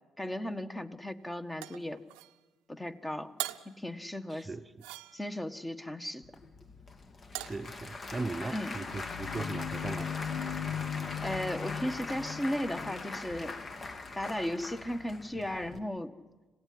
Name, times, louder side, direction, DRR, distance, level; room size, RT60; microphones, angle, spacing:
voice 1, 0.2-2.0 2.7-3.3 3.6-4.5 5.1-6.2 8.5-8.7 11.2-13.6 14.1-16.1, left 1 dB, 15° left, 1.6 m, -35 dB
sound 1, 1.6-2.4 3.4-3.8 4.8-5.5 7.3-7.7, right 18 dB, 85° right, 0.7 m, -40 dB
voice 2, 4.3-4.9 7.3-10.1, right 3 dB, 25° right, 0.9 m, -39 dB
Applause / Crowd, 6.2-15.8, left 3 dB, 40° left, 1.8 m, -42 dB
sound 2, 8.5-13.7, left 8 dB, 70° left, 0.8 m, -39 dB
26.0 x 16.5 x 9.7 m
supercardioid pair, 60°, 0 cm